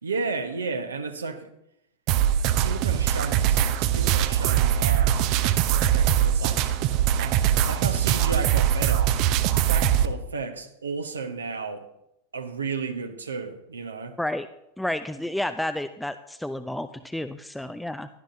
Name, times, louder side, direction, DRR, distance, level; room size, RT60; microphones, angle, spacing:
voice 1, 0.0-1.5 2.6-6.7 7.1-9.1 9.6-11.8 12.3-14.2, right 4 dB, 70° right, 7 dB, 1.1 m, -33 dB
sound 1, 2.1-10.1, right 10 dB, 40° right, 0.7 m, -22 dB
voice 2, 14.8-18.1, left 1 dB, 5° left, 10 dB, 0.5 m, -30 dB
17.0 x 11.5 x 2.7 m, 0.82 s
figure-of-eight pair, 90°, 0 cm